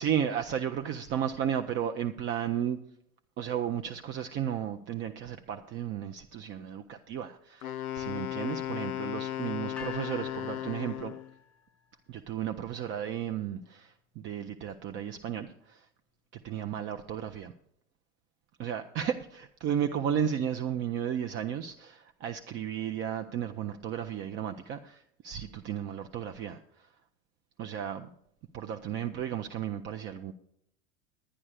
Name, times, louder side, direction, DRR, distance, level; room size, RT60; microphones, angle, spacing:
voice 1, 0.0-2.8 3.4-11.1 12.1-15.9 16.3-17.5 18.6-26.9 27.6-28.1 28.5-30.3, right 9 dB, 25° right, 7 dB, 0.5 m, -34 dB
Wind instrument woodwind instrument, 7.6-11.3, left 12 dB, 75° left, 0.5 m, -36 dB
sound 1, 9.8-11.9, left 8 dB, 5° left, 1.0 m, -48 dB
11.5 x 9.7 x 4.8 m, 0.71 s
figure-of-eight pair, 80°, 43 cm